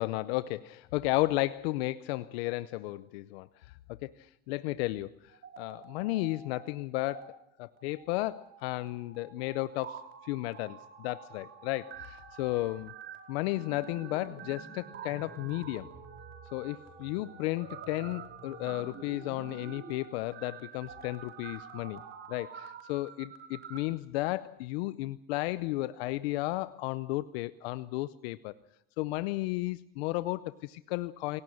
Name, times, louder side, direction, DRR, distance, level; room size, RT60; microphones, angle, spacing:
voice 1, 0.0-12.9 13.3-15.9 16.5-22.0 22.3-28.5 29.0-31.4, left 18 dB, 80° left, 15 dB, 0.7 m, -34 dB
sound 1, 5.3-6.7 6.9-7.2 7.8-23.8, right 7 dB, 40° right, 4.7 m, -48 dB
27.5 x 18.0 x 6.4 m, 0.81 s
supercardioid pair, 120°, 30 cm